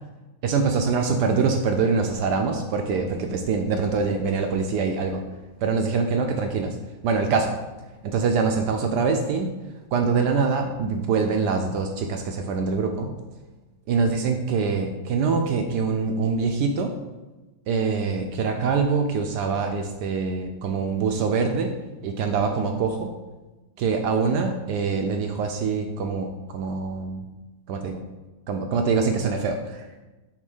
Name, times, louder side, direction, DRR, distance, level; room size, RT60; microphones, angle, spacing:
voice 1, 0.4-5.2 5.6-6.8 7.0-7.6 8.0-9.6 9.9-13.1 13.9-16.9 17.7-21.7 22.0-23.1 23.8-27.3 27.7-28.0 28.5-29.9, right 5 dB, 75° right, 4 dB, 1.0 m, -24 dB
5.1 x 4.0 x 5.4 m, 1.1 s
omnidirectional pair, 2.2 m